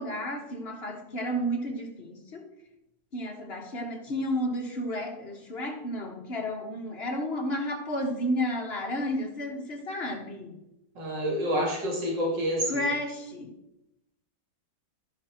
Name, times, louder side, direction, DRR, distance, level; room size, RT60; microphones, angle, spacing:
voice 1, 0.0-2.5 3.1-10.6 12.7-13.5, equal, 40° left, 2 dB, 1.4 m, -32 dB
voice 2, 10.9-12.9, equal, 90° right, -2 dB, 3.0 m, -28 dB
13.5 x 5.8 x 4.4 m, 0.88 s
omnidirectional pair, 1.9 m